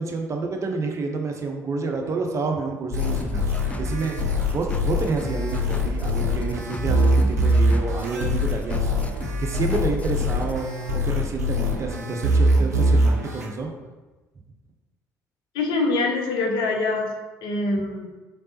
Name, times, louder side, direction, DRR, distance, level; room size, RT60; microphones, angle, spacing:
voice 1, 0.0-3.5 3.8-4.2 4.5-8.9 9.4-10.7 10.9-13.7, right 3 dB, 35° right, 3 dB, 0.6 m, -29 dB
sound 1, 2.9-10.6, left 2 dB, 15° left, 0.3 m, -32 dB
sound 2, 2.9-13.5, equal, 90° right, 0.4 m, -23 dB
voice 2, 15.5-17.1 17.4-18.1, left 3 dB, 60° left, 2 dB, 0.6 m, -24 dB
3.8 x 3.4 x 2.8 m, 1.2 s
figure-of-eight pair, 55°, 9 cm